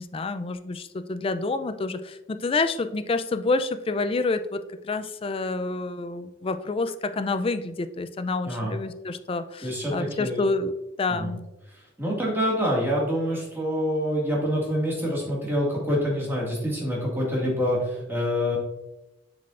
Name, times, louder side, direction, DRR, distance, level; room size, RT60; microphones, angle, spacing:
voice 1, 0.0-10.7 11.0-11.5, left 3 dB, 30° left, 11 dB, 0.4 m, -28 dB
voice 2, 8.4-8.8 9.6-10.5 11.1-11.3 11.7-18.6, equal, 10° right, -4 dB, 1.9 m, -26 dB
7.0 x 6.7 x 2.5 m, 0.96 s
head